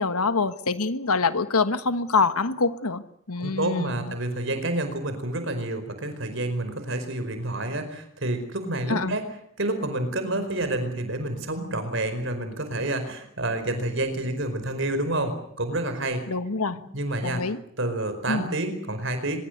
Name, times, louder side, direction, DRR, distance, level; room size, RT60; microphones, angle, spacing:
voice 1, 0.0-3.0 3.3-4.1 8.9-9.2 16.3-16.8 17.2-17.6 18.3-18.5, left 4 dB, 85° left, 12 dB, 1.4 m, -25 dB
voice 2, 3.4-9.3 9.6-16.2 16.7-17.4 17.8-19.4, right 1 dB, 55° right, 9 dB, 4.9 m, -29 dB
24.5 x 22.5 x 8.0 m, 0.68 s
head